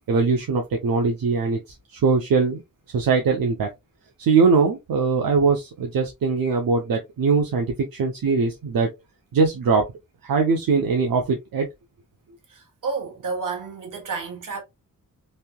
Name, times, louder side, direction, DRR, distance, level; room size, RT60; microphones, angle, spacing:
voice 1, 0.1-1.6 1.9-2.6 2.9-3.7 4.2-8.9 9.3-9.8 10.2-11.7, right 4 dB, 80° right, 0.7 m, -21 dB
voice 2, 12.5-14.6, right 4 dB, 65° right, 1.2 m, -31 dB
3.3 x 2.7 x 2.2 m
wide cardioid pair, 85°, 34 cm